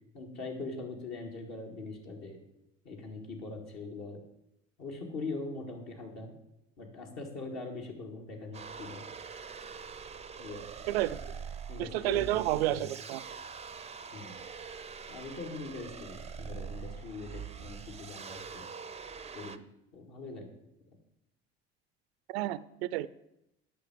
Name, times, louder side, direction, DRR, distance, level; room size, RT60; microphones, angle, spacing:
voice 1, 0.1-2.4 2.8-4.2 4.8-6.3 6.8-9.0 10.4-10.7 11.7-12.4 12.7-12.9 14.1-14.4 15.1-18.7 19.3-19.6 19.9-20.6, left 3 dB, 55° left, 1 dB, 2.3 m, -42 dB
sound 1, 8.5-19.6, right 6 dB, 20° right, 0.5 m, -44 dB
voice 2, 10.9-11.2 11.8-13.2 22.3-23.1, right 15 dB, 65° right, 18 dB, 0.5 m, -30 dB
8.4 x 6.2 x 7.4 m, 0.84 s
figure-of-eight pair, 55°, 33 cm